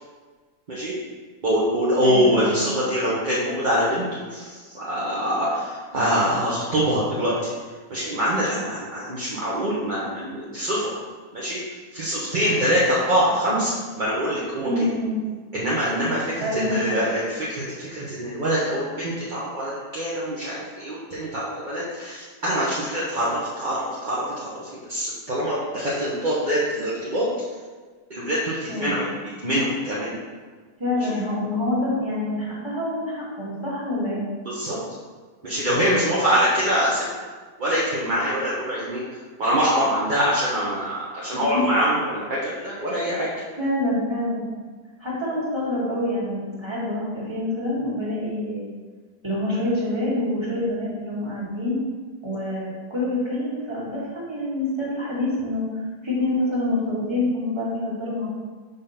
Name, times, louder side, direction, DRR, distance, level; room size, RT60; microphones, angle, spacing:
voice 1, 1.4-7.5 7.9-10.9 11.3-11.6 11.9-14.7 15.5-27.3 28.1-29.0 29.4-30.2 31.0-31.1 34.4-34.8 35.4-37.1 37.6-39.0 39.4-43.3, equal, 35° right, -8 dB, 0.9 m, -24 dB
voice 2, 2.0-2.6 14.6-15.2 16.4-17.0 28.7-29.0 30.8-34.2 41.3-41.6 42.9-43.1 43.6-44.4 45.0-48.7 49.2-51.8 52.2-58.3, left 1 dB, 15° right, -7 dB, 1.8 m, -26 dB
5.3 x 3.7 x 5.6 m, 1.5 s
omnidirectional pair, 1.9 m